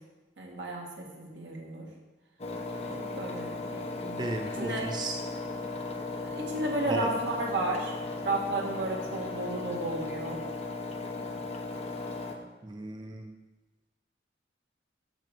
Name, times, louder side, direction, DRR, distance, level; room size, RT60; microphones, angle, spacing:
voice 1, 0.4-1.9 2.8-4.9 6.3-7.9 8.2-10.4, right 2 dB, 75° right, -1 dB, 1.9 m, -33 dB
Engine, 2.4-12.3, left 3 dB, 35° left, 0.9 m, -37 dB
voice 2, 4.2-5.2 6.9-7.1 12.6-13.3, right 2 dB, 25° right, 4 dB, 0.5 m, -34 dB
6.6 x 6.2 x 6.8 m, 1.1 s
head